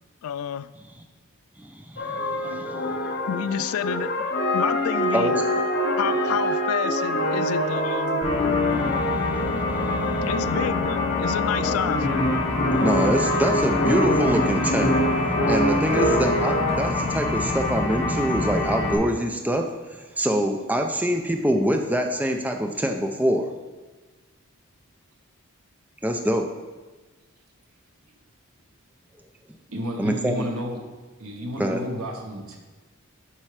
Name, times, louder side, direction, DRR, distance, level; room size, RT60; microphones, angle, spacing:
voice 1, 0.2-0.7 3.3-4.1 4.5-5.3 6.0-8.3 10.3-12.3, left 9 dB, 80° left, 14 dB, 0.3 m, -29 dB
voice 2, 1.6-3.0 5.1-5.4 8.7-10.3 12.8-14.9 15.5-19.6 20.0-23.5 26.0-26.4 30.0-30.4 31.6-31.8, equal, 5° right, 4 dB, 0.4 m, -25 dB
sound 1, 2.0-16.9, left 1 dB, 50° left, 0.9 m, -25 dB
sound 2, 8.2-18.9, left 2 dB, 25° left, 1.1 m, -27 dB
voice 3, 29.7-30.8 31.2-32.6, equal, 85° right, 2 dB, 1.2 m, -31 dB
7.4 x 4.4 x 4.9 m, 1.3 s
head